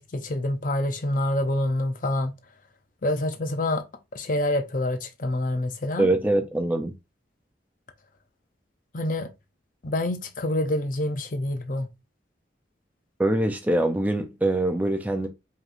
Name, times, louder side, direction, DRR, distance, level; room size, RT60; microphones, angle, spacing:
voice 1, 0.0-2.3 3.0-3.8 4.1-6.1 8.9-9.3 9.8-11.9, left 1 dB, 45° left, 0.6 m, -27 dB
voice 2, 6.0-6.9 13.2-15.3, right 1 dB, 10° right, 0.5 m, -23 dB
5.1 x 3.0 x 2.5 m
head